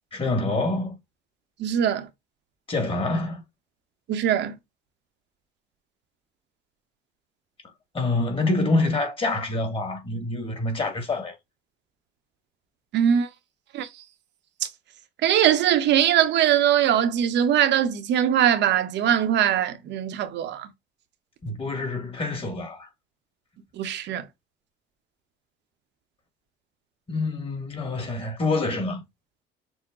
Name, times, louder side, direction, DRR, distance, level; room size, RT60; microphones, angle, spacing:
voice 1, 0.1-0.9 2.7-3.4 7.9-11.4 21.4-22.9 27.1-29.0, left 2 dB, 30° left, 1.9 m, -26 dB
voice 2, 1.6-2.1 4.1-4.5 12.9-13.3 13.7-13.9 15.2-20.7 23.8-24.3, right 10 dB, 65° right, 0.9 m, -21 dB
6.3 x 2.1 x 3.7 m
cardioid pair, 110°, 20 cm